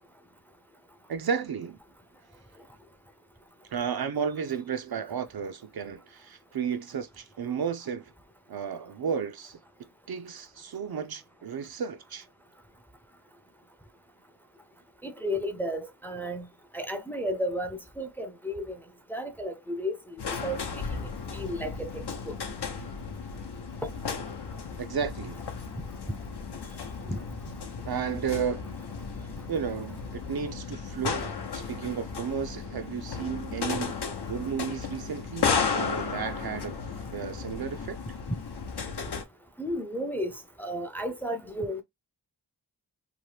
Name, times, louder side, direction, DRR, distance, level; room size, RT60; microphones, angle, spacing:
voice 1, 1.1-1.8 3.7-8.1 8.5-9.6 10.1-12.3 24.8-25.4 27.8-28.7 29.5-36.8 37.1-38.0, right 7 dB, 65° right, 0.5 m, -33 dB
voice 2, 15.0-16.5 16.7-18.8 19.1-20.0 20.3-22.3 23.8-23.9 27.1-27.2 39.6-40.3 40.6-41.8, equal, 5° left, 0.5 m, -33 dB
sound 1, 20.2-39.2, left 5 dB, 70° left, 0.7 m, -34 dB
2.9 x 2.1 x 3.2 m
wide cardioid pair, 60°, 41 cm